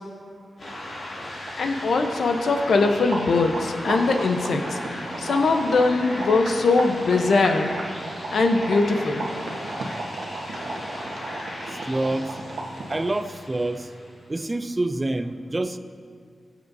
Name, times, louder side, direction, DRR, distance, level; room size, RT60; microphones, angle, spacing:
sound 1, 0.6-14.3, left 1 dB, 55° left, 2.8 m, -37 dB
sound 2, 1.1-1.2 1.4-13.1, right 2 dB, 85° right, 1.2 m, -34 dB
voice 1, 1.6-4.8 5.2-7.7 8.3-9.3, left 3 dB, 75° left, 5 dB, 0.8 m, -21 dB
voice 2, 11.7-12.4 12.9-13.9 14.3-15.8, right 2 dB, 20° right, 11 dB, 0.4 m, -27 dB
19.5 x 7.5 x 2.7 m, 2.2 s
wide cardioid pair, 125°, 0 cm